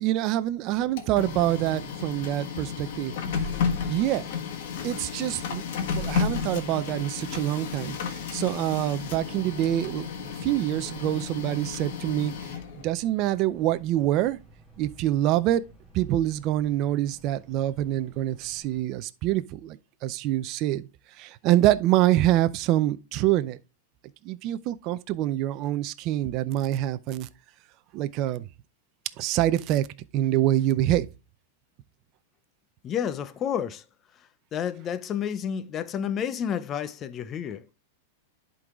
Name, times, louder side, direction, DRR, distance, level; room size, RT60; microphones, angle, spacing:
voice 1, 0.0-3.1 3.9-4.2 4.8-5.6 5.9-10.0 10.4-12.3 12.8-14.4 14.8-15.6 15.9-20.9 21.2-23.6 24.2-27.3 27.9-28.4 29.2-29.9 30.1-31.1, right 14 dB, 40° right, 0.5 m, -25 dB
Printer, 0.8-12.9, left 6 dB, 60° left, 1.6 m, -32 dB
sound 1, 8.6-18.8, right 2 dB, ahead, 2.3 m, -55 dB
voice 2, 32.8-33.8 34.5-37.7, left 8 dB, 25° left, 0.6 m, -30 dB
10.5 x 3.9 x 3.6 m
supercardioid pair, 145°, 0 cm